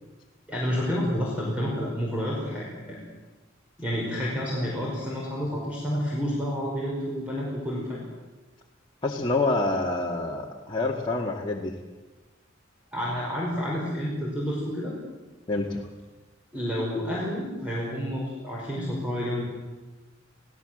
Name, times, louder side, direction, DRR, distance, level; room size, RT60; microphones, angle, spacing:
voice 1, 0.5-3.0 3.8-8.1 12.9-14.9 16.5-19.4, equal, 5° right, -5 dB, 5.4 m, -29 dB
voice 2, 9.0-11.7 15.5-15.8, left 2 dB, 25° left, -2 dB, 1.9 m, -27 dB
28.5 x 17.5 x 7.8 m, 1.2 s
head